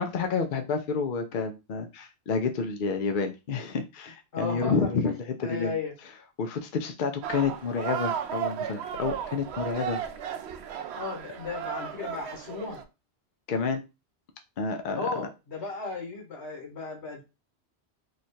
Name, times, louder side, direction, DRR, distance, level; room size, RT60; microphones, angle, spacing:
voice 1, 0.0-5.1 5.4-5.8 6.4-10.0 13.5-13.8 14.6-15.3, left 5 dB, 60° left, 5 dB, 0.6 m, -29 dB
voice 2, 4.3-5.1 5.4-5.9 10.9-12.8 14.9-17.2, left 4 dB, 80° left, 1 dB, 1.7 m, -35 dB
sound 1, 7.2-12.8, right 8 dB, 75° right, 0.8 m, -34 dB
3.2 x 2.4 x 4.2 m, 0.27 s
omnidirectional pair, 1.1 m